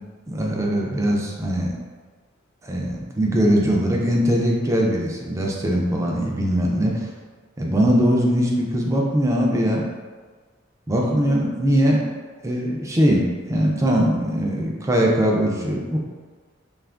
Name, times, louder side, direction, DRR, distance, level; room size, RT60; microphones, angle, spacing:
voice 1, 0.3-1.8 2.6-7.1 7.6-9.8 10.9-12.1 12.4-16.0, equal, 15° right, -2 dB, 0.4 m, -21 dB
2.8 x 2.4 x 3.3 m, 1.4 s
head